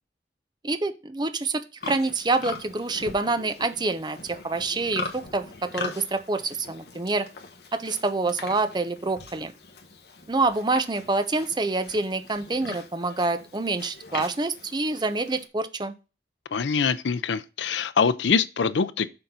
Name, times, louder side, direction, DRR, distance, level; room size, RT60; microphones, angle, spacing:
voice 1, 0.6-7.3 7.7-9.5 10.3-15.9, right 3 dB, 25° right, 0.6 m, -27 dB
Livestock farm animals working animals, 1.8-15.5, left 3 dB, 60° left, 1.4 m, -41 dB
voice 2, 16.5-19.1, left 5 dB, 85° left, 0.5 m, -24 dB
6.8 x 3.9 x 5.5 m
head